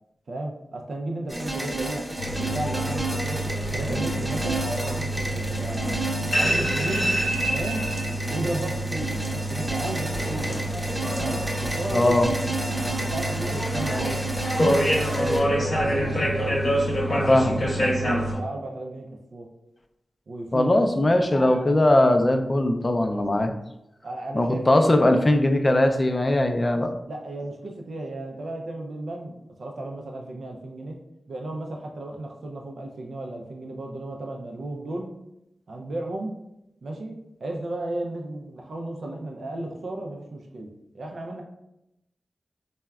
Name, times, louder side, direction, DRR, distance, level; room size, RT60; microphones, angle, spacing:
voice 1, 0.3-3.4 3.7-6.0 6.4-7.2 7.5-7.8 8.2-10.6 11.2-12.2 12.6-14.2 15.1-15.3 15.7-16.6 17.1-19.5 20.3-21.2 24.0-25.0 27.1-31.0 31.3-35.1 35.7-36.3 36.8-40.7 40.9-41.4, right 2 dB, 80° right, 1 dB, 0.3 m, -34 dB
sound 1, 1.3-15.4, right 1 dB, 25° right, 0.8 m, -31 dB
sound 2, 2.2-18.4, equal, 55° left, 0.9 m, -27 dB
voice 2, 11.9-12.3 17.3-17.9 20.5-23.5 24.3-26.9, left 1 dB, 40° left, 5 dB, 0.3 m, -20 dB
3.4 x 2.0 x 2.2 m, 0.86 s
cardioid pair, 45°, 0 cm